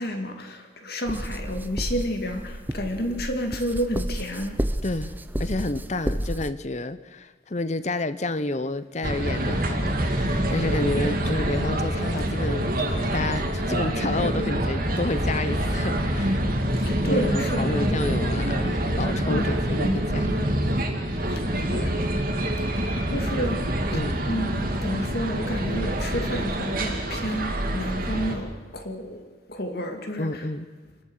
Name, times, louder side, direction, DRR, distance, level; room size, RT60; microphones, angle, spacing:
voice 1, 0.0-4.5 16.8-17.7 19.3-19.5 21.3-21.4 21.7-21.9 23.1-23.6 24.3-29.2 29.5-30.3, equal, 55° left, 5 dB, 2.4 m, -30 dB
sound 1, 1.1-6.5, equal, 10° right, 0.6 m, -31 dB
voice 2, 4.8-5.1 5.4-16.5 17.1-20.4 21.1-21.2 23.9-24.2 30.2-30.7, left 2 dB, 35° left, 14 dB, 0.8 m, -30 dB
sound 2, 9.0-28.3, right 1 dB, 45° right, 2.5 m, -26 dB
27.5 x 12.0 x 8.1 m, 1.5 s
head